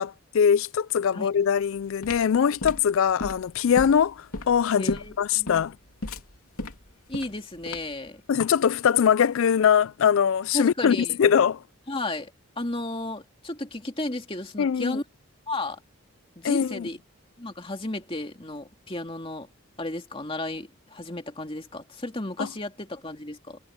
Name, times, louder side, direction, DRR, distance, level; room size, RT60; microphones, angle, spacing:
voice 1, 0.0-5.8 8.3-11.6 14.6-15.0 16.4-16.9 22.4-22.5, left 7 dB, 70° left, 0.4 m, -22 dB
sound 1, 1.6-8.1, left 2 dB, 85° left, 3.3 m, -35 dB
voice 2, 4.8-5.6 7.1-8.2 10.5-11.1 11.9-12.3 12.6-15.0 15.5-15.8 16.4-17.0 17.4-19.5 19.8-23.6, left 2 dB, 25° left, 2.4 m, -33 dB
head